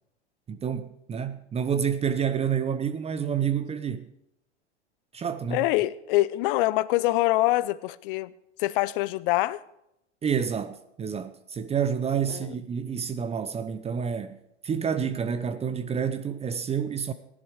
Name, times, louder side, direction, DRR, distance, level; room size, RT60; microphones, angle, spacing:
voice 1, 0.5-4.1 5.1-5.6 10.2-14.4 14.6-17.1, right 7 dB, 15° right, 0.7 m, -29 dB
voice 2, 5.5-8.3 8.6-9.6 12.3-12.5, left 18 dB, 50° left, 0.7 m, -25 dB
16.0 x 11.0 x 5.0 m
hypercardioid pair, 95°, 35 cm